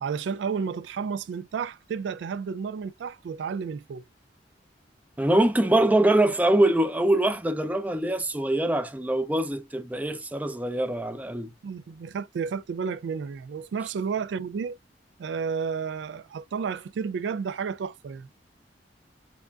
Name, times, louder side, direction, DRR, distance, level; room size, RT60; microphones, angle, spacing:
voice 1, 0.0-4.0 11.6-14.8 15.2-18.3, right 6 dB, 80° right, 0.3 m, -31 dB
voice 2, 5.2-11.5, right 1 dB, 10° right, 0.4 m, -23 dB
4.8 x 2.4 x 2.2 m
head